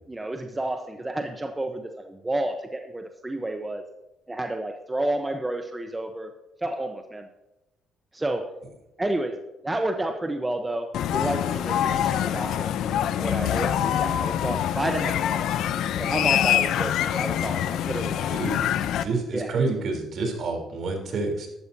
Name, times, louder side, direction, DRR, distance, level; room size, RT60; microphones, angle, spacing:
voice 1, 0.1-3.8 4.3-6.3 6.6-7.3 8.1-8.4 9.0-9.4 9.6-10.9 11.1-12.7 13.2-15.4 16.0-18.3 19.3-19.5, right 1 dB, 15° right, 5 dB, 0.9 m, -30 dB
sound 1, 10.9-19.0, left 10 dB, 75° left, 0.6 m, -25 dB
voice 2, 18.3-21.5, right 3 dB, 55° right, 2 dB, 3.6 m, -29 dB
13.0 x 12.5 x 2.8 m, 0.96 s
cardioid pair, 105°, 0 cm